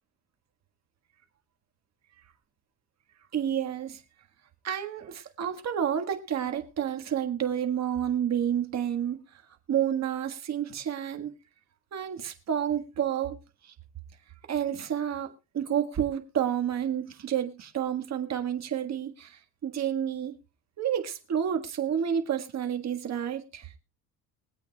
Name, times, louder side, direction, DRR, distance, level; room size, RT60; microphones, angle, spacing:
voice 1, 3.3-4.0 4.6-9.2 9.7-11.3 11.9-13.4 14.5-20.3 20.8-23.7, right 9 dB, 45° right, 1.6 m, -30 dB
23.0 x 8.4 x 2.3 m
cardioid pair, 125°, 39 cm